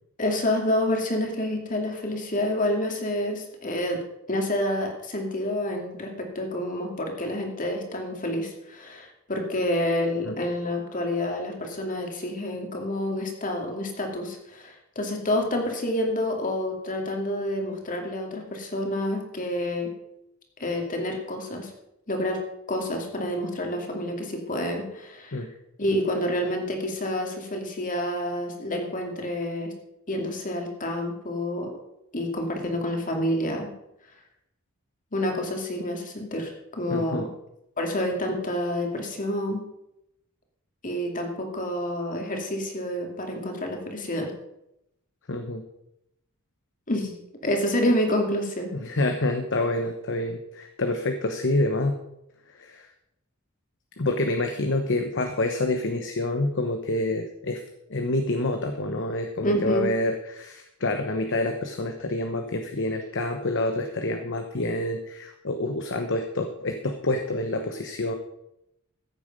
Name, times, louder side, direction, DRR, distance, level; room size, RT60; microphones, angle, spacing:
voice 1, 0.2-4.0 4.3-19.9 20.6-21.7 22.1-22.4 22.7-25.5 25.8-29.7 30.1-31.7 32.1-33.7 35.1-37.3 37.8-39.6 40.8-44.3 46.9-47.1 47.4-48.7 59.4-59.9, left 1 dB, 40° left, 2 dB, 2.5 m, -28 dB
voice 2, 36.9-37.2 45.3-45.6 48.7-52.0 52.6-52.8 54.0-57.6 57.9-68.1, left 2 dB, 60° left, 5 dB, 1.1 m, -27 dB
14.5 x 8.5 x 5.4 m, 0.83 s
head